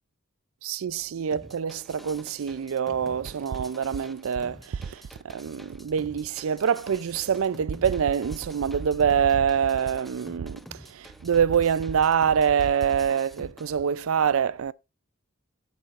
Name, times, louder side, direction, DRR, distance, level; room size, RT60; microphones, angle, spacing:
voice 1, 0.6-14.7, right 7 dB, 85° right, 0.4 m, -25 dB
sound 1, 1.3-13.7, equal, ahead, 0.5 m, -48 dB
13.0 x 9.2 x 2.5 m
head